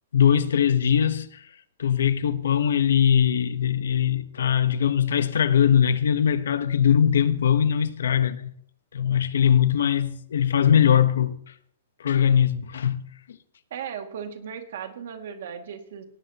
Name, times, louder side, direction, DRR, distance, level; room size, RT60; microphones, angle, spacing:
voice 1, 0.1-1.4 1.8-8.5 8.9-11.4 12.0-13.4, left 8 dB, 75° left, 1.0 m, -21 dB
voice 2, 13.7-16.0, right 7 dB, 50° right, 2.2 m, -36 dB
18.0 x 18.0 x 3.0 m
hypercardioid pair, 180°, 0 cm